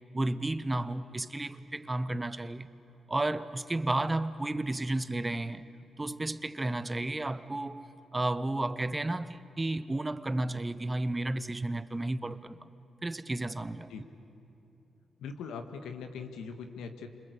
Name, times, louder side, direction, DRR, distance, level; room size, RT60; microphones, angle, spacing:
voice 1, 0.1-2.7 3.1-5.6 6.0-7.8 8.1-12.7 13.0-13.9, right 2 dB, 25° right, 13 dB, 1.1 m, -32 dB
voice 2, 15.2-17.1, left 5 dB, 80° left, 6 dB, 1.8 m, -41 dB
28.0 x 25.5 x 8.2 m, 3.0 s
supercardioid pair, 45°, 0 cm